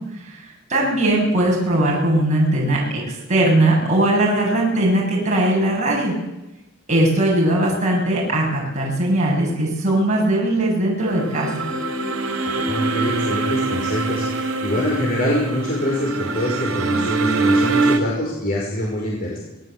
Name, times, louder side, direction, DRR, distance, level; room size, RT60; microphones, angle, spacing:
voice 1, 0.1-6.1 6.9-11.7, right 1 dB, 35° right, -3 dB, 7.7 m, -19 dB
sound 1, 11.0-18.0, right 3 dB, 75° right, 4.4 m, -23 dB
voice 2, 12.4-19.4, left 1 dB, 45° left, -3 dB, 5.7 m, -25 dB
25.5 x 20.0 x 8.2 m, 0.98 s
head